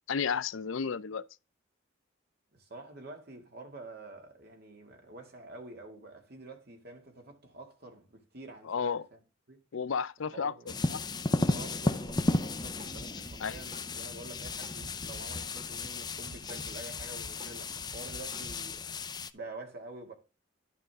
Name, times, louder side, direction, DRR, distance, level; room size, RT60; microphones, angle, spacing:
voice 1, 0.1-1.2 8.6-9.1 9.7-10.5 10.9-11.0 13.4-13.6, left 6 dB, 80° left, 0.5 m, -32 dB
voice 2, 2.5-9.2 9.5-9.6 10.3-10.9 11.5-18.9 19.3-20.1, right 2 dB, 55° right, 2.1 m, -48 dB
sound 1, 10.7-19.3, left 2 dB, 20° left, 0.5 m, -34 dB
Drum kit, 11.4-12.0 12.3-15.7 16.0-18.8, right 1 dB, 20° right, 3.9 m, -49 dB
11.0 x 5.2 x 3.5 m
head